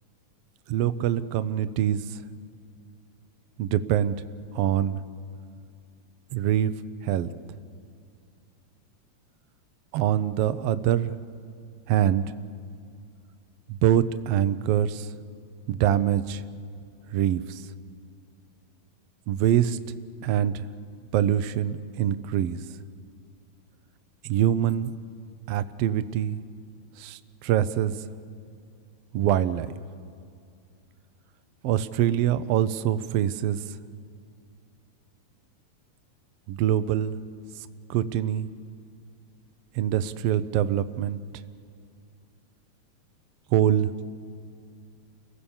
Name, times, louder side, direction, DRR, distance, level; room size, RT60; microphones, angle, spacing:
voice 1, 0.7-2.2 3.6-4.1 4.5-5.0 6.3-6.7 7.0-7.3 9.9-11.1 11.9-12.2 13.7-15.1 15.7-16.4 17.1-17.6 19.3-19.8 20.2-20.6 21.1-22.6 24.2-24.9 25.5-26.4 27.0-27.9 29.1-29.7 31.6-33.6 36.5-37.2 37.9-38.5 39.7-41.2 43.5-44.0, right 11 dB, 75° right, 12 dB, 1.5 m, -24 dB
29.0 x 17.5 x 7.1 m, 2.4 s
omnidirectional pair, 3.3 m